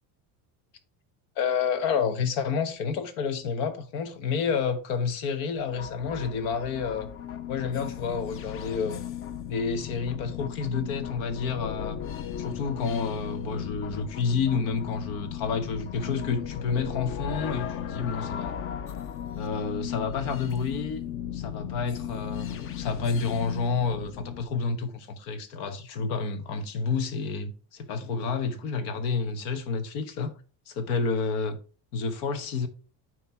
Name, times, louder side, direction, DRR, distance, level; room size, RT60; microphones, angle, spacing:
voice 1, 1.4-7.1 7.5-9.0 9.5-12.0 12.4-18.5 19.4-21.0 21.3-30.3 30.7-31.6 31.9-32.7, left 5 dB, 85° left, 1.3 m, -29 dB
sound 1, 5.6-24.4, left 10 dB, 30° left, 0.4 m, -36 dB
9.4 x 3.2 x 4.3 m
cardioid pair, 145°, 46 cm